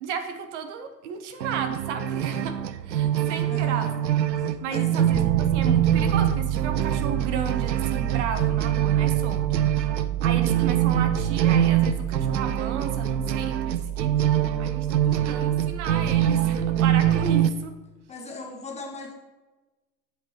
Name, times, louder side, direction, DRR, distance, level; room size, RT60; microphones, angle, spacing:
voice 1, 0.0-2.6 2.8-3.9 4.6-9.4 10.2-14.2 14.6-17.7, right 7 dB, 45° right, 7 dB, 1.1 m, -33 dB
sound 1, 1.4-17.5, right 10 dB, 85° right, 0.6 m, -24 dB
voice 2, 3.5-4.0 4.4-5.0 18.1-19.1, left 3 dB, 15° left, 1 dB, 0.9 m, -39 dB
Piano, 5.1-17.3, right 12 dB, 25° right, 0.6 m, -30 dB
8.3 x 7.8 x 3.0 m, 1.2 s
figure-of-eight pair, 105°, 50 cm